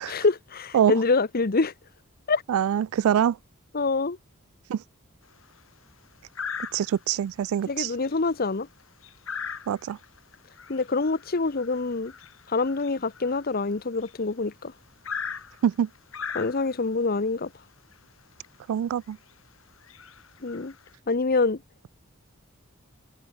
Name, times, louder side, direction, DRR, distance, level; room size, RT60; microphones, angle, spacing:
voice 1, 0.0-1.7 2.3-2.4 3.7-4.2 7.7-8.7 10.7-12.1 12.5-14.7 16.3-17.5 20.4-20.7 21.1-21.6, left 3 dB, 45° left, 0.9 m, -25 dB
voice 2, 2.5-3.4 4.7-4.8 6.7-7.9 9.7-10.0 15.6-15.9 18.7-19.2, right 9 dB, 85° right, 0.3 m, -24 dB
sound 1, 5.2-5.6 6.3-7.2 7.6-7.8 8.0-14.3 15.0-16.9 17.9-18.0 18.4-18.6 19.1-19.3 19.8-20.9, left 6 dB, 70° left, 3.7 m, -39 dB
head